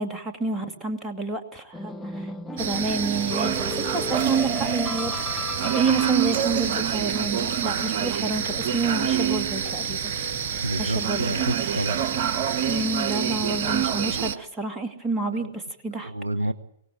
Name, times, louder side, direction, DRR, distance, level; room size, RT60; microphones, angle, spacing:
voice 1, 0.0-10.1 10.4-10.5 10.8-11.3 12.7-16.1, right 3 dB, 10° right, 5 dB, 2.5 m, -30 dB
sound 1, 1.7-6.7, left 2 dB, 5° left, 1.5 m, -34 dB
sound 2, 2.6-14.3, right 9 dB, 50° right, 1.0 m, -26 dB
sound 3, 3.4-11.5, left 4 dB, 45° left, 4.8 m, -46 dB
voice 2, 10.6-12.0 15.3-15.5 16.0-16.5, right 1 dB, 85° right, 15 dB, 0.8 m, -29 dB
23.5 x 18.5 x 8.9 m, 0.79 s
figure-of-eight pair, 110°, 0 cm